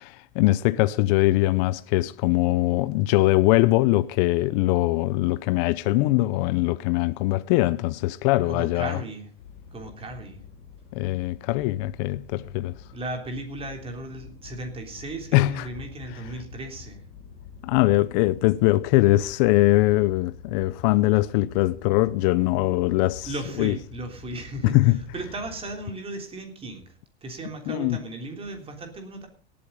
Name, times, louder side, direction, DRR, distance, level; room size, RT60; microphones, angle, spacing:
voice 1, 0.0-9.0 10.9-12.7 15.3-15.7 16.1-16.2 17.6-23.3 23.6-23.7 24.6-25.0 27.7-28.0, left 18 dB, 50° left, 0.6 m, -22 dB
voice 2, 8.5-9.3 9.7-10.4 12.9-17.0 23.2-26.9 27.2-29.3, right 2 dB, 20° right, 3.4 m, -36 dB
sound 1, 9.4-25.8, left 6 dB, 90° left, 3.8 m, -46 dB
17.5 x 8.7 x 5.3 m
supercardioid pair, 135°, 29 cm